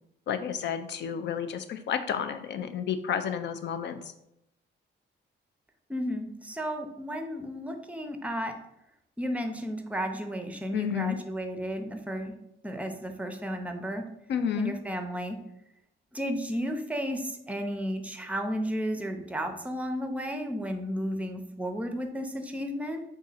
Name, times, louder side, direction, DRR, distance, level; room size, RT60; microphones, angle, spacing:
voice 1, 0.3-4.0 10.7-11.2 14.3-14.7, left 8 dB, 65° left, 10 dB, 0.5 m, -31 dB
voice 2, 5.9-8.5 9.2-12.3 12.6-14.0 14.6-15.4 16.1-23.0, equal, 5° right, 5 dB, 0.6 m, -33 dB
3.7 x 2.7 x 4.0 m, 0.82 s
cardioid pair, 90°, 20 cm